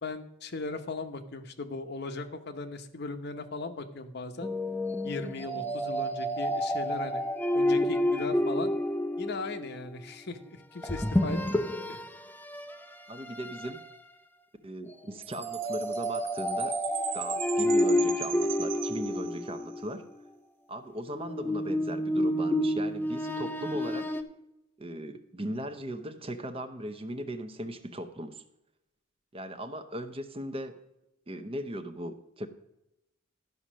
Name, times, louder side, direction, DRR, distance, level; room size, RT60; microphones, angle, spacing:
voice 1, 0.0-4.5 5.0-7.2 7.5-8.7 9.2-11.6 11.9-12.0, left 3 dB, 55° left, 8 dB, 0.8 m, -38 dB
sound 1, 4.4-9.7 10.8-12.1 12.5-12.7 13.3-13.8 15.4-19.8 21.1-24.2, left 1 dB, 10° left, 0.5 m, -29 dB
voice 2, 13.1-13.8 14.6-16.8 17.1-20.0 20.7-24.1 24.8-28.4 29.3-30.8 31.3-32.5, right 1 dB, 30° right, 8 dB, 0.7 m, -38 dB
Chime, 15.2-19.7, right 11 dB, 60° right, 0.7 m, -39 dB
12.0 x 5.6 x 6.2 m, 0.89 s
head